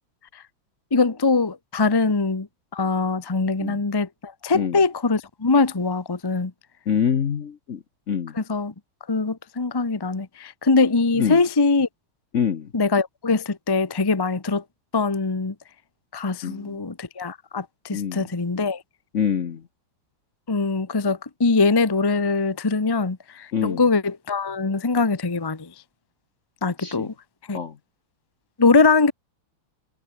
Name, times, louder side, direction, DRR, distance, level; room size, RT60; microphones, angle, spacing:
voice 1, 0.9-2.5 2.7-6.5 8.3-8.7 9.1-11.9 12.7-14.6 14.9-15.5 16.1-18.8 20.5-25.7 26.6-27.1 27.5-27.6 28.6-29.1, left 4 dB, 20° left, 0.7 m, -22 dB
voice 2, 6.9-7.8 8.1-8.3 11.2-11.4 12.3-12.7 16.4-16.7 17.9-18.3 19.1-19.6 23.5-23.8 26.8-27.1 27.5-27.7, left 7 dB, 50° left, 1.0 m, -25 dB
omnidirectional pair, 2.3 m